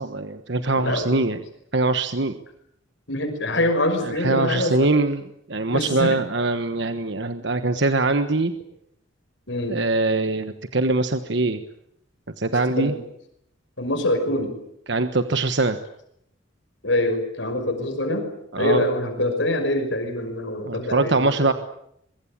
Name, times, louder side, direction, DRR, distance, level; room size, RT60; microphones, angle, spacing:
voice 1, 0.0-1.4 1.7-2.4 4.0-5.2 5.5-8.5 9.7-11.6 12.4-12.9 14.9-15.8 18.5-18.8 20.6-21.5, right 2 dB, 60° right, 9 dB, 1.3 m, -22 dB
voice 2, 0.8-1.1 3.1-4.9 5.7-6.2 9.5-9.8 12.8-12.9 13.8-14.5 16.8-18.3 18.6-21.5, left 1 dB, 65° left, 5 dB, 5.9 m, -24 dB
24.0 x 23.0 x 8.7 m, 0.75 s
head